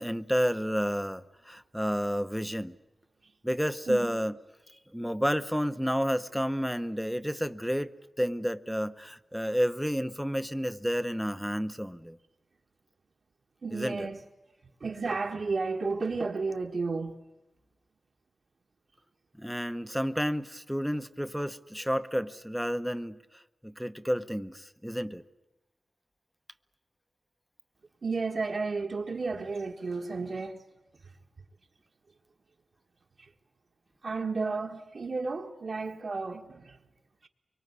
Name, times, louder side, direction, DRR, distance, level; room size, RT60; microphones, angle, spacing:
voice 1, 0.0-2.7 3.4-4.4 4.9-12.2 13.7-14.1 19.4-25.2, equal, ahead, 0.9 m, -31 dB
voice 2, 3.9-4.2 13.6-14.2 14.8-17.2 28.0-30.6 33.2-33.3 34.0-36.8 37.2-37.3, right 4 dB, 60° right, 1.6 m, -32 dB
24.0 x 24.0 x 9.7 m
wide cardioid pair, 90°, 0 cm